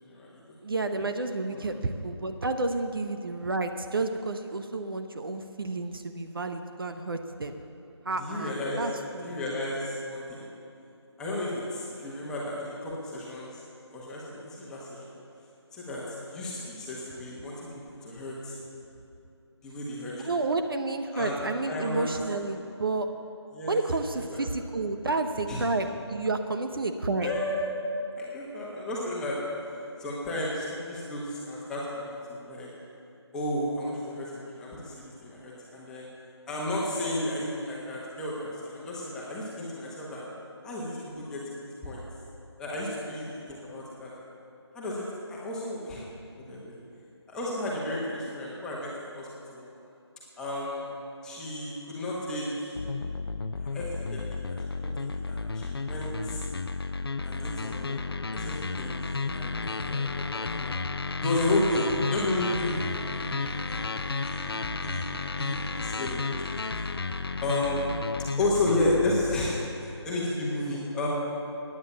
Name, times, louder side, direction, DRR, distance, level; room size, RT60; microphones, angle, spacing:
voice 1, 0.0-0.6 1.5-1.7 8.1-8.9 9.2-10.5 11.2-13.6 13.9-15.0 15.7-18.5 19.6-20.4 21.1-21.4 21.6-22.1 23.5-24.4 25.5-25.6 27.2-27.7 28.2-29.4 30.0-32.7 33.3-36.1 36.5-40.2 40.6-42.1 42.6-44.1 44.7-46.0 46.5-46.8 47.3-49.6 50.4-50.9 51.2-52.8 53.6-56.4 57.2-59.0 59.3-60.7 61.2-66.4 67.4-67.8 68.4-71.1, left 1 dB, 5° left, -6 dB, 1.5 m, -33 dB
voice 2, 0.6-7.6 8.0-9.3 20.2-23.1 23.7-27.3, right 3 dB, 50° right, 7 dB, 0.9 m, -30 dB
sound 1, 52.7-69.5, left 4 dB, 55° left, 0.7 m, -32 dB
17.5 x 9.9 x 7.0 m, 2.7 s
figure-of-eight pair, 160°, 15 cm